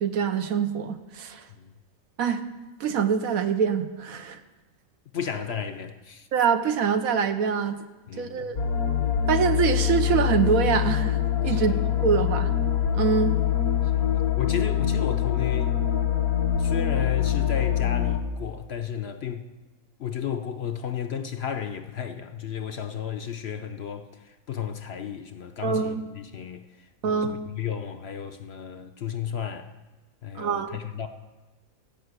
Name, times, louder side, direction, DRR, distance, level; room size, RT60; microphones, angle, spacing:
voice 1, 0.0-1.4 2.2-2.4 2.8-4.4 6.3-7.8 8.2-8.6 9.3-11.2 11.4-12.5 12.9-13.4 25.6-26.1 27.0-27.4 30.3-30.8, right 6 dB, 75° right, 1.2 m, -24 dB
voice 2, 5.1-6.3 8.1-8.6 11.4-11.8 13.9-14.1 14.4-15.8 16.6-19.4 20.0-29.7 30.2-31.1, left 8 dB, 55° left, 0.8 m, -33 dB
sound 1, 8.6-18.2, left 10 dB, 85° left, 1.7 m, -24 dB
15.5 x 5.7 x 8.0 m
omnidirectional pair, 1.5 m